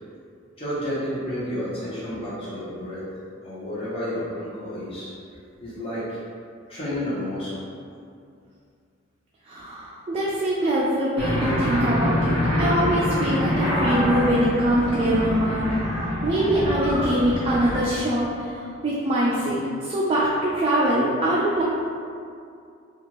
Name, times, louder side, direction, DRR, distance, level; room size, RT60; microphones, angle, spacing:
voice 1, 0.6-3.1 3.4-5.1 5.6-6.2 6.7-7.6, equal, 30° left, -10 dB, 0.9 m, -30 dB
voice 2, 9.5-15.7 16.2-21.6, right 1 dB, 30° right, -7 dB, 0.4 m, -23 dB
sound 1, 11.2-17.8, equal, 5° left, 0.9 m, -25 dB
3.4 x 2.4 x 3.0 m, 2.4 s
head